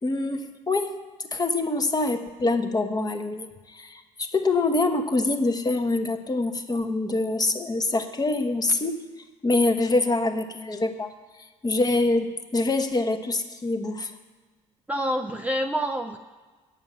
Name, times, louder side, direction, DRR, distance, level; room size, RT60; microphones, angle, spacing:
voice 1, 0.0-0.9 1.3-9.1 9.4-11.1 11.4-14.1, left 2 dB, 25° left, 6 dB, 1.1 m, -25 dB
voice 2, 14.9-16.2, equal, 10° right, 5 dB, 0.5 m, -27 dB
8.9 x 7.2 x 7.3 m, 1.3 s
hypercardioid pair, 55°, 16 cm